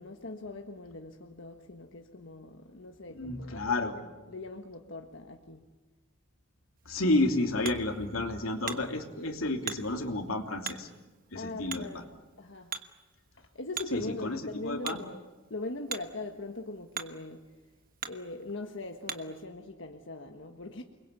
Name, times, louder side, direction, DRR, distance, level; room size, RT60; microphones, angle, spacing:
voice 1, 0.0-5.6 11.3-12.0 12.4-12.7 13.4-15.2 15.5-17.4 18.1-20.8, left 2 dB, 60° left, 3 dB, 1.5 m, -41 dB
voice 2, 3.1-3.9 6.8-10.9 11.3-12.0 13.9-15.0, left 2 dB, 90° left, 4 dB, 2.9 m, -31 dB
Hammer, 6.8-19.4, right 7 dB, 45° right, 1.3 m, -44 dB
29.5 x 21.5 x 8.3 m, 1.2 s
head